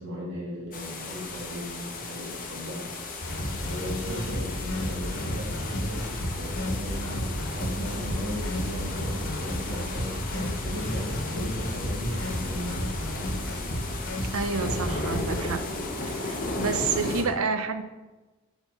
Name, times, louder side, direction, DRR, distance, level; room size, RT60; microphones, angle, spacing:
voice 1, 0.0-2.9 3.4-13.3, equal, 55° right, -5 dB, 2.3 m, -37 dB
sound 1, 0.7-17.2, left 2 dB, 40° left, 1.0 m, -36 dB
sound 2, 3.2-15.4, equal, 60° left, 1.3 m, -32 dB
voice 2, 14.3-15.6 16.0-17.8, right 5 dB, 75° right, 8 dB, 0.6 m, -29 dB
6.1 x 4.3 x 5.2 m, 1.1 s
head